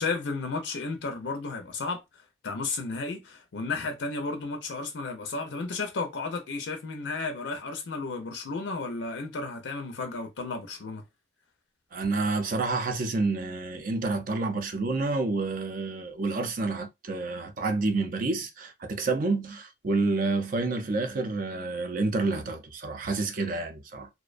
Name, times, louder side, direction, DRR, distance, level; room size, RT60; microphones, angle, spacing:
voice 1, 0.0-2.0 2.4-11.0, left 3 dB, 70° left, 0.5 m, -33 dB
voice 2, 11.9-24.1, right 3 dB, 45° right, 0.5 m, -29 dB
2.4 x 2.1 x 2.4 m
head